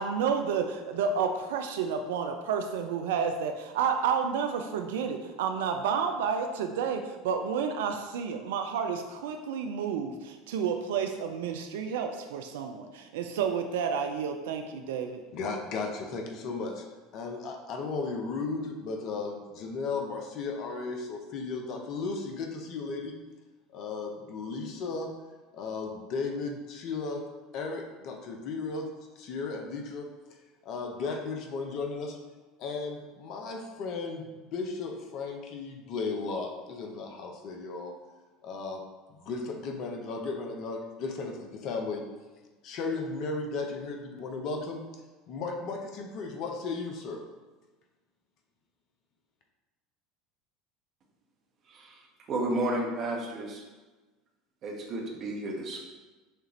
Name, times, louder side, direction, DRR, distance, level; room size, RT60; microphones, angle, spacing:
voice 1, 0.0-15.2, right 6 dB, 65° right, 5 dB, 0.3 m, -30 dB
voice 2, 15.3-16.8 17.1-23.2 23.7-25.1 25.5-27.2 27.5-28.9 29.2-30.1 30.6-32.2 32.6-37.9 38.4-38.8 39.1-42.0 42.6-44.8 45.3-47.2, left 4 dB, 50° left, 3 dB, 0.7 m, -35 dB
voice 3, 51.7-52.0 52.3-53.6 54.6-55.8, right 1 dB, 40° right, 0 dB, 1.0 m, -32 dB
6.5 x 2.5 x 3.0 m, 1.2 s
figure-of-eight pair, 70°, 0 cm